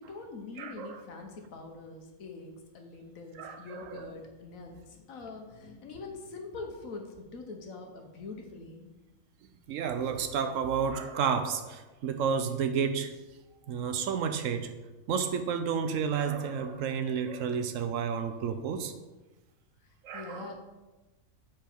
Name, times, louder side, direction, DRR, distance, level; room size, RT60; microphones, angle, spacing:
voice 1, 0.0-8.9 20.1-20.5, left 3 dB, 85° left, 3 dB, 1.4 m, -44 dB
voice 2, 0.6-1.0 3.4-4.1 9.7-13.1 13.7-14.7 15.1-18.9 20.0-20.5, right 6 dB, 75° right, 8 dB, 1.0 m, -31 dB
7.0 x 4.5 x 4.5 m, 1.1 s
omnidirectional pair, 1.4 m